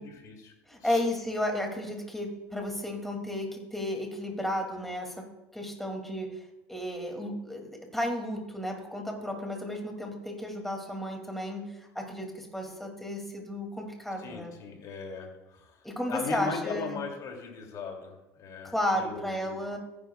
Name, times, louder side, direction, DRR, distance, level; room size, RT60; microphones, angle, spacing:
voice 1, 0.0-0.5 0.8-1.0 14.2-15.8 16.1-19.8, left 5 dB, 50° left, 2 dB, 2.7 m, -39 dB
voice 2, 0.7-14.5 15.8-17.0 18.6-19.8, left 1 dB, 5° left, 2 dB, 2.5 m, -33 dB
14.5 x 10.5 x 2.4 m, 0.99 s
supercardioid pair, 95°, 8 cm